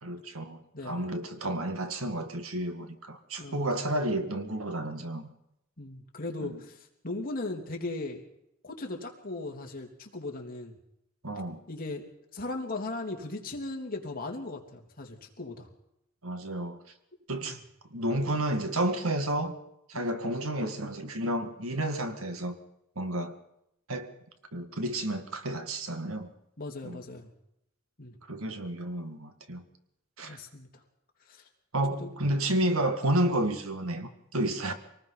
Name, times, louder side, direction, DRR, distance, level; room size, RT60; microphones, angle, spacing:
voice 1, 0.0-5.2 6.4-6.6 11.2-11.6 16.2-16.8 17.3-17.6 17.9-19.5 19.9-22.6 23.0-23.4 23.9-24.1 24.5-26.3 26.8-27.0 28.3-29.6 30.2-30.4 31.7-34.7, right 1 dB, 75° right, 8 dB, 2.0 m, -31 dB
voice 2, 0.7-1.1 3.4-3.9 5.8-8.2 8.6-10.8 11.7-12.0 12.3-15.7 17.4-17.6 19.9-20.1 26.6-27.3 28.0-28.2 30.2-30.8 31.3-31.4 31.9-32.4, left 2 dB, 40° left, 1 dB, 3.2 m, -38 dB
25.5 x 19.0 x 5.8 m, 0.81 s
head